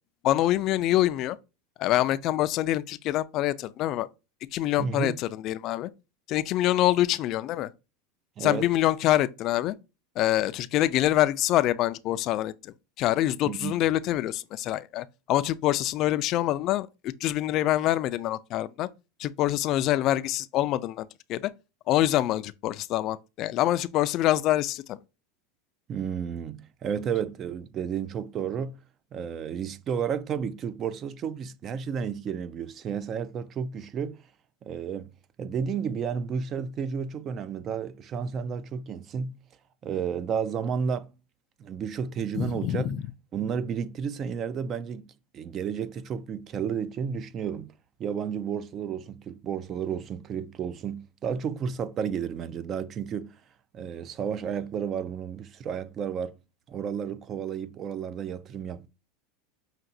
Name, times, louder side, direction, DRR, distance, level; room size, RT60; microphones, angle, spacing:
voice 1, 0.2-1.4 1.8-4.1 4.5-5.9 6.3-7.7 8.4-9.8 10.2-16.9 17.2-18.9 19.2-21.5 21.9-25.0 42.3-43.0, left 14 dB, 45° left, 0.3 m, -25 dB
voice 2, 4.8-5.2 8.4-8.7 13.4-13.7 25.9-28.8 29.1-34.2 34.6-35.1 35.4-39.3 39.8-41.1 41.6-42.9 43.3-47.7 48.0-53.4 53.7-56.4 56.7-58.9, right 7 dB, 35° right, 0.4 m, -32 dB
5.8 x 2.9 x 2.6 m
supercardioid pair, 130°, 0 cm